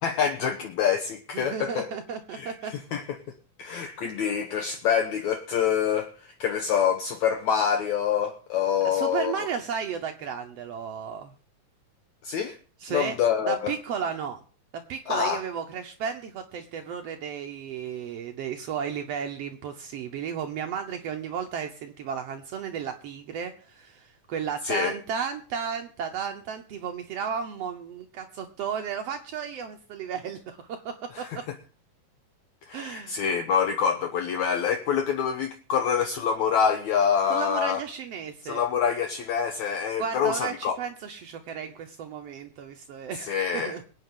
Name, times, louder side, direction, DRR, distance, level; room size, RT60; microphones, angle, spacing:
voice 1, 0.0-1.9 2.3-3.2 3.6-9.5 12.2-12.6 12.9-13.7 15.1-15.4 24.6-24.9 31.1-31.4 32.7-37.8 38.4-40.8 43.2-43.8, left 7 dB, 70° left, 1.9 m, -26 dB
voice 2, 1.3-2.7 8.8-11.3 12.8-13.2 13.4-14.4 14.9-31.5 32.7-33.2 37.3-38.6 40.0-43.8, right 7 dB, 80° right, 1.4 m, -34 dB
22.5 x 8.9 x 3.8 m
omnidirectional pair, 4.1 m